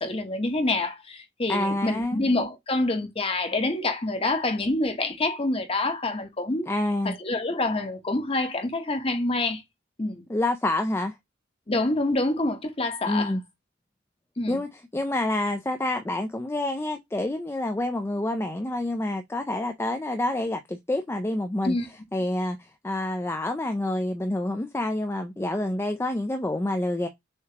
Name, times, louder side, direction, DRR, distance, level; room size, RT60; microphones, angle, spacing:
voice 1, 0.0-6.7 7.0-9.6 10.0-10.2 11.7-13.3 14.4-14.6 21.6-21.9, left 2 dB, 30° left, 0.9 m, -27 dB
voice 2, 1.5-2.2 6.7-7.1 10.3-11.2 13.1-13.4 14.5-21.8 22.1-27.1, left 1 dB, 15° left, 0.4 m, -28 dB
6.5 x 2.9 x 2.8 m
head